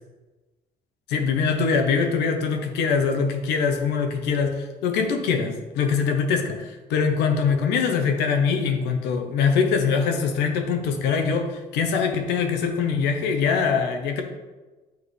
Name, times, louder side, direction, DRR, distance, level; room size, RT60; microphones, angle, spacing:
voice 1, 1.1-14.2, left 5 dB, 90° left, 5 dB, 0.8 m, -23 dB
7.3 x 4.0 x 3.3 m, 1.2 s
cardioid pair, 110°, 17 cm